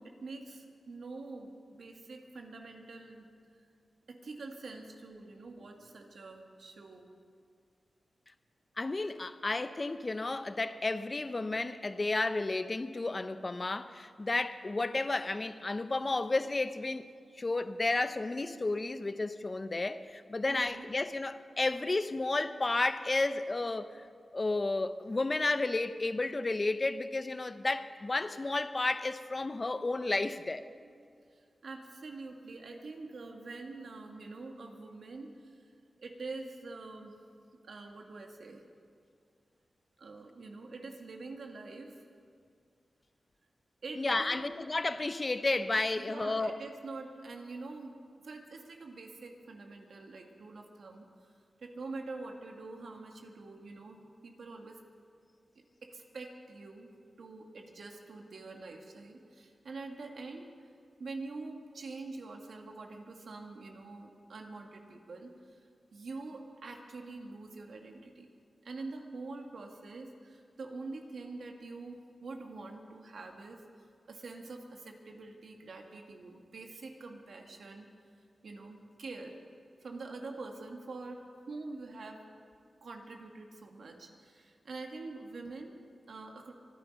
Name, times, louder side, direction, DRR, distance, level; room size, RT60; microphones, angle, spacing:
voice 1, 0.0-3.3 4.1-7.1 20.5-20.9 30.8-35.7 36.0-37.2 37.5-38.6 40.0-42.0 43.8-44.5 45.9-48.0 48.2-51.1 51.6-54.8 55.6-56.9 57.2-60.7 61.0-65.3 65.9-68.3 68.6-73.6 74.1-77.9 78.4-79.4 79.8-82.2 82.8-86.5, right 3 dB, 75° right, 1.8 m, -45 dB
voice 2, 8.8-17.1 17.4-23.9 24.3-30.6 44.0-46.6, left 2 dB, 40° left, 0.7 m, -32 dB
24.5 x 9.9 x 5.3 m
cardioid pair, 55°, 0 cm